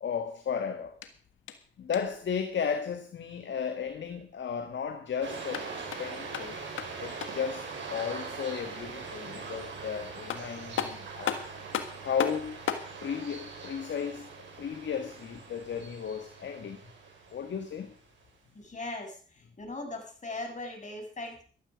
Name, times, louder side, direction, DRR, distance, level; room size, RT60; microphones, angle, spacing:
voice 1, 0.0-1.0 1.8-5.7 6.0-6.6 7.0-11.4 12.0-12.6 13.0-14.3 14.6-16.9 17.3-17.9, left 7 dB, 65° left, 1.7 m, -34 dB
sound 1, 0.9-2.3 5.3-7.5 9.8-9.9 10.3-12.9, left 9 dB, 80° left, 1.7 m, -36 dB
sound 2, 5.2-18.1, right 4 dB, 70° right, 5.8 m, -42 dB
voice 2, 18.5-19.2 19.6-21.4, left 2 dB, 35° left, 7.3 m, -39 dB
14.5 x 12.5 x 5.2 m
supercardioid pair, 55°, 20 cm